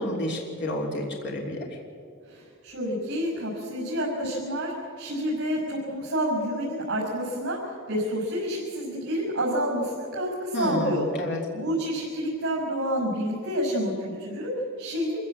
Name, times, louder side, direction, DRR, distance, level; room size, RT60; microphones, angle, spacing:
voice 1, 0.0-1.7 10.5-11.4, equal, 55° left, 0 dB, 3.2 m, -30 dB
voice 2, 2.2-11.1 11.5-15.2, equal, 55° right, -4 dB, 5.8 m, -29 dB
26.0 x 15.5 x 8.6 m, 2.3 s
head